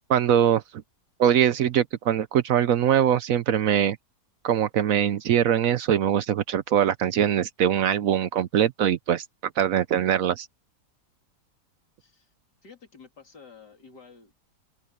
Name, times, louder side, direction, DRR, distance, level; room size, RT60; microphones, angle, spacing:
voice 1, 0.1-0.6 1.2-4.0 4.4-9.2 9.6-10.5, right 9 dB, 65° right, 0.9 m, -22 dB
voice 2, 12.6-14.4, left 5 dB, 75° left, 3.8 m, -50 dB
open air
omnidirectional pair, 1.8 m